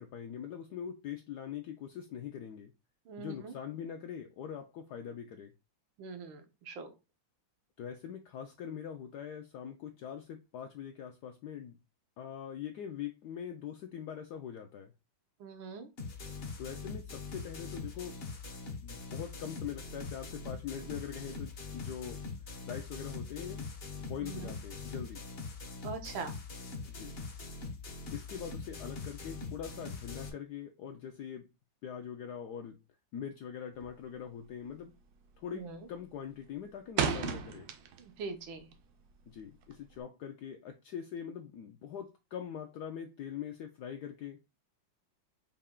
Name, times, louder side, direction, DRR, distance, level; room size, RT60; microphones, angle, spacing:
voice 1, 0.0-2.7 3.2-5.5 7.8-11.8 12.2-14.9 16.6-18.2 18.8-22.2 22.6-23.7 24.0-25.2 26.9-27.1 28.1-31.5 31.8-32.8 33.1-34.9 35.4-37.7 39.3-44.4, left 8 dB, 75° left, 1.0 m, -43 dB
voice 2, 3.1-3.5 6.0-6.9 15.4-15.9 24.2-24.5 25.8-26.3 35.5-35.8 38.0-38.7, right 5 dB, 85° right, 1.6 m, -42 dB
sound 1, 16.0-30.3, left 4 dB, 55° left, 0.6 m, -43 dB
sound 2, 33.7-34.1 34.4-34.8 35.1-35.6 35.9-38.2 38.5-40.0, right 7 dB, 70° right, 1.0 m, -35 dB
5.5 x 2.3 x 3.6 m
omnidirectional pair, 2.1 m